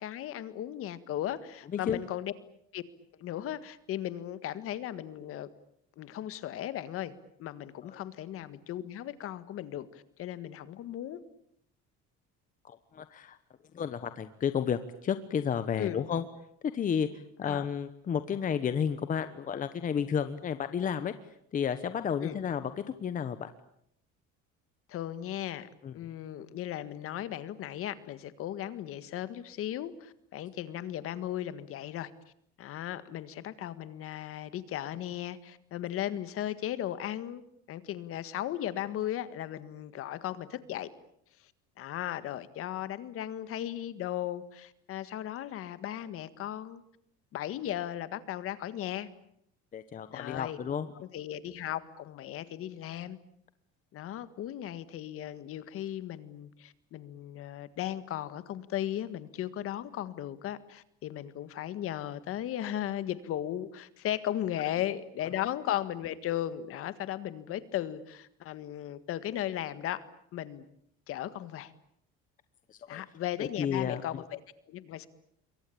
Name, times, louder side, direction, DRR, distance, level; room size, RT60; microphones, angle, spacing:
voice 1, 0.0-2.3 2.7-2.8 3.2-5.5 6.0-7.1 7.4-11.2 15.8-16.0 17.4-17.7 22.2-22.4 24.9-32.1 32.6-37.4 37.7-40.9 41.8-46.8 47.3-49.1 50.1-50.6 51.0-53.2 53.9-70.0 70.3-70.7 71.1-71.7 72.9-74.4 74.7-75.1, left 12 dB, 50° left, 14 dB, 1.8 m, -36 dB
voice 2, 12.6-13.4 13.7-16.2 16.6-17.1 17.4-21.1 21.5-22.7 23.0-23.5 25.8-25.9 49.7-50.9 72.7-73.0 73.4-74.0, left 7 dB, 30° left, 11 dB, 1.1 m, -32 dB
27.5 x 23.0 x 8.6 m, 0.71 s
cardioid pair, 165°, 29 cm